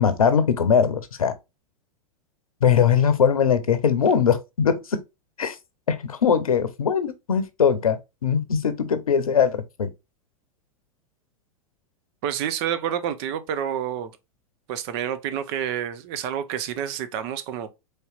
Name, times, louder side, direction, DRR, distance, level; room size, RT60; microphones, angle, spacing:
voice 1, 0.0-1.3 2.6-5.0 5.4-5.6 5.9-9.9, left 7 dB, 75° left, 0.7 m, -21 dB
voice 2, 12.2-14.1 14.7-17.7, right 9 dB, 45° right, 0.7 m, -28 dB
4.2 x 3.3 x 2.4 m
figure-of-eight pair, 95°, 18 cm